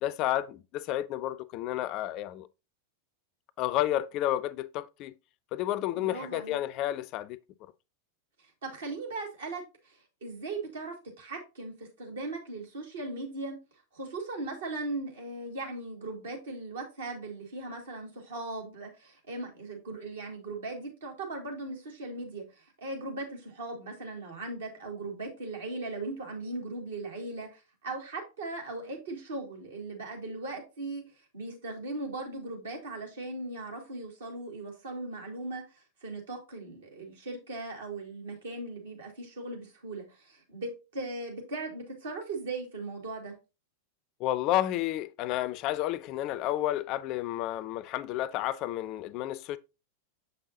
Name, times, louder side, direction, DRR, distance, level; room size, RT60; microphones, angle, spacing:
voice 1, 0.0-2.5 3.6-5.1 5.5-7.4 44.2-49.6, left 13 dB, 40° left, 0.3 m, -31 dB
voice 2, 6.0-6.6 8.6-13.6 13.9-31.0 31.3-35.6 36.0-43.4, right 2 dB, 65° right, 1.8 m, -38 dB
6.7 x 5.4 x 2.7 m
figure-of-eight pair, 90°, 0 cm